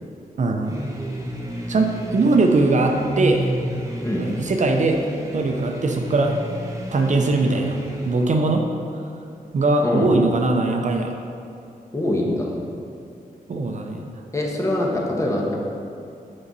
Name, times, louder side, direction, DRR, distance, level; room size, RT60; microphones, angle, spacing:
voice 1, 0.4-0.8 1.7-3.5 4.2-5.0 5.3-6.4 6.9-7.8 8.0-8.6 9.5-11.1 13.5-14.1, right 2 dB, 55° right, 3 dB, 0.6 m, -20 dB
sound 1, 0.6-8.5, right 1 dB, 20° right, 1.0 m, -31 dB
voice 2, 9.8-10.1 11.9-12.6 14.3-15.6, left 1 dB, 20° left, -2 dB, 1.2 m, -23 dB
8.8 x 5.4 x 4.0 m, 2.6 s
wide cardioid pair, 130°, 15 cm